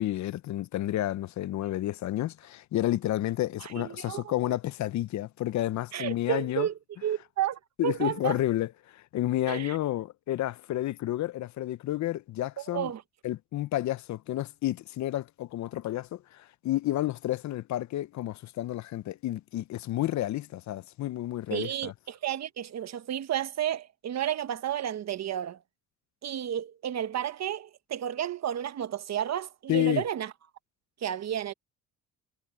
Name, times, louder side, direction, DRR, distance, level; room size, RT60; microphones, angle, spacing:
voice 1, 0.0-6.7 7.8-12.9 13.2-21.9 29.7-30.0, left 14 dB, 55° left, 0.7 m, -30 dB
voice 2, 3.6-4.3 5.9-6.7 7.0-8.4 9.5-9.8 12.6-13.0 21.5-25.6 26.2-30.3 31.0-31.5, right 10 dB, 50° right, 1.3 m, -32 dB
supercardioid pair, 85°, 34 cm